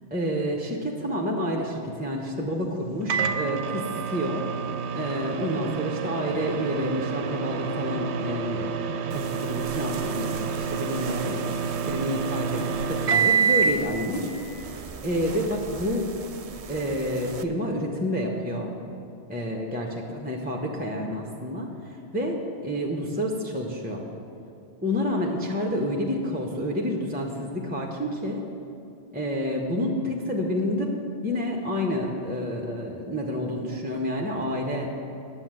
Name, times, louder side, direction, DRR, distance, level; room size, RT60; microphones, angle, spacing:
voice 1, 0.1-4.4 4.9-8.8 9.1-16.1 16.7-18.7 19.3-24.0 24.8-28.4 29.1-30.9 31.2-34.9, equal, 10° right, 0 dB, 0.8 m, -29 dB
Microwave oven, 3.1-13.9, right 6 dB, 80° right, 0.9 m, -28 dB
sound 1, 9.1-17.4, right 5 dB, 50° right, 0.4 m, -39 dB
9.9 x 7.0 x 7.5 m, 2.7 s
omnidirectional pair, 1.1 m